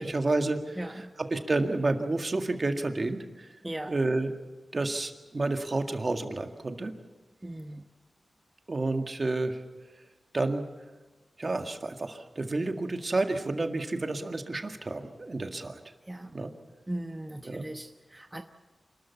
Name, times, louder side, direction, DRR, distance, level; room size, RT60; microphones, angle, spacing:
voice 1, 0.0-3.5 3.9-4.3 4.7-6.9 8.7-9.6 10.3-10.7 11.4-15.8 16.3-16.5 17.4-17.7, right 2 dB, 45° right, 6 dB, 1.9 m, -30 dB
voice 2, 0.8-1.1 3.6-3.9 7.4-7.8 16.1-16.3 16.9-18.4, right 1 dB, 20° right, 6 dB, 1.0 m, -38 dB
27.0 x 13.0 x 8.4 m, 1.2 s
cardioid pair, 55°, 0 cm